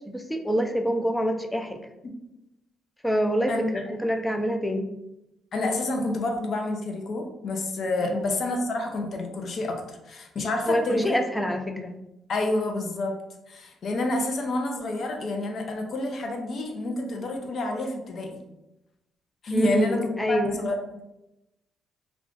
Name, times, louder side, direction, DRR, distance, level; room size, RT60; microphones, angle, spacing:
voice 1, 0.1-1.9 3.0-4.9 8.0-8.2 10.7-11.9 19.5-20.6, equal, 5° left, 4 dB, 0.4 m, -26 dB
voice 2, 3.5-3.9 5.5-11.2 11.8-11.9 12.3-13.2 13.5-18.4 19.4-20.8, left 2 dB, 55° left, 3 dB, 0.6 m, -29 dB
2.4 x 2.3 x 3.7 m, 0.91 s
cardioid pair, 90°, 0 cm